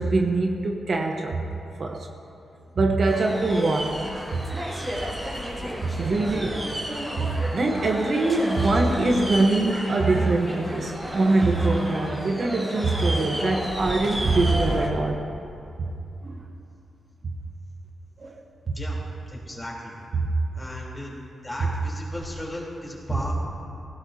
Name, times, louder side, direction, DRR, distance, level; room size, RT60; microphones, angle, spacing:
voice 1, 0.0-1.4 1.8-2.1 2.7-4.0 4.3-4.4 6.0-6.6 7.2-15.2 15.8-15.9 16.2-16.4 18.2-18.4 18.7-18.8 20.1-20.3 23.1-23.2, right 2 dB, 45° right, 1 dB, 1.1 m, -23 dB
sound 1, 3.1-14.9, equal, 15° right, 2.8 m, -32 dB
voice 2, 19.3-20.0 20.5-21.1 21.4-23.3, left 1 dB, 15° left, -4 dB, 3.6 m, -35 dB
18.0 x 16.5 x 2.8 m, 2.6 s
cardioid pair, 105°, 0 cm